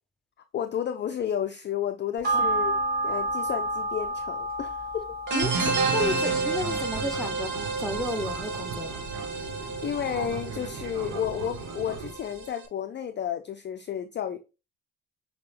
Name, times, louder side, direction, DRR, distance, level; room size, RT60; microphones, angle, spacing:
voice 1, 0.5-5.1 9.8-14.4, left 9 dB, 30° left, 0.4 m, -32 dB
sound 1, 2.2-11.0 11.3-11.4, right 1 dB, 25° right, 2.4 m, -32 dB
sound 2, 5.3-12.6, right 4 dB, 50° right, 1.4 m, -31 dB
Fixed-wing aircraft airplane, 5.6-12.1, right 5 dB, 70° right, 1.0 m, -38 dB
voice 2, 5.9-9.0, left 1 dB, ahead, 0.9 m, -32 dB
6.6 x 2.2 x 3.3 m
hypercardioid pair, 55°, 39 cm